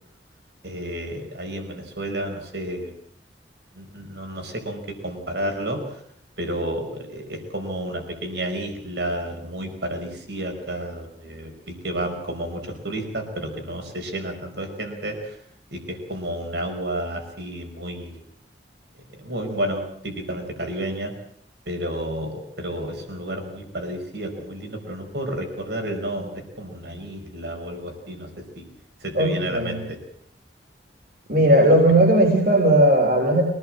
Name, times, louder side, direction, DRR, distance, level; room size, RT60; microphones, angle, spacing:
voice 1, 0.6-2.9 3.7-5.8 6.4-15.4 15.7-18.2 19.2-21.1 21.7-28.3 28.6-28.7 29.0-30.0, right 1 dB, 75° right, 4 dB, 5.4 m, -31 dB
voice 2, 29.1-29.8 31.3-33.4, right 1 dB, 55° right, 1 dB, 4.0 m, -17 dB
23.5 x 18.5 x 7.7 m, 0.64 s
head